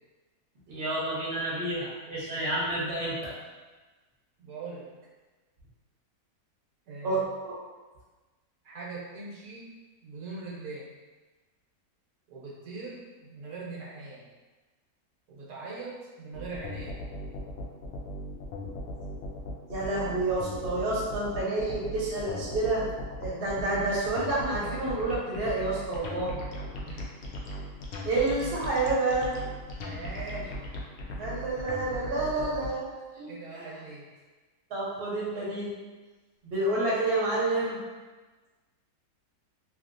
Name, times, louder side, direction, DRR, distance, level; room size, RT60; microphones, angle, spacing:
voice 1, 0.7-3.3 7.0-7.5 19.7-22.8 23.2-26.4 28.0-29.4 31.2-32.9 33.2-33.3 33.6-33.7 34.7-35.7 36.4-37.8, right 2 dB, 50° right, -6 dB, 0.9 m, -29 dB
voice 2, 4.4-4.9 6.9-7.2 8.6-9.7 10.0-10.9 12.3-14.2 15.3-17.0 26.8-27.2 29.8-30.6 31.1-31.3 33.3-34.1, right 3 dB, 90° right, -6 dB, 1.3 m, -41 dB
sound 1, 16.3-32.7, left 1 dB, 70° left, 0.6 m, -37 dB
2.8 x 2.8 x 2.5 m, 1.3 s
omnidirectional pair, 1.6 m